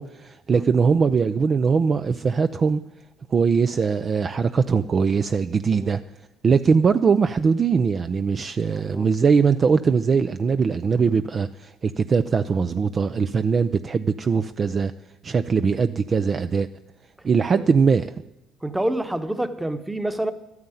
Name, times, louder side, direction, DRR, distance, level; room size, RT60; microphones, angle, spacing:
voice 1, 0.0-2.8 3.3-6.0 6.4-14.9 15.2-16.7 17.2-18.1, right 5 dB, 35° right, 0.5 m, -21 dB
voice 2, 8.7-9.1 17.5-17.6 18.6-20.3, right 1 dB, 5° right, 1.1 m, -27 dB
12.5 x 9.4 x 9.1 m
cardioid pair, 110°, 0 cm